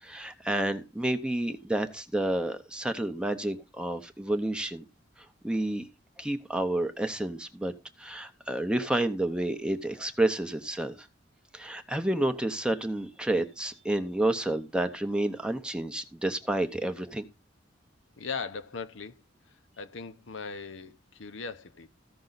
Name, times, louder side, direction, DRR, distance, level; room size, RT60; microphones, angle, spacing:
voice 1, 0.0-4.8 5.4-5.9 6.2-7.7 8.0-11.1 11.5-17.2, right 1 dB, 5° right, 0.6 m, -30 dB
voice 2, 18.2-19.2 19.5-21.9, left 5 dB, 75° left, 0.8 m, -39 dB
14.5 x 5.4 x 3.9 m
head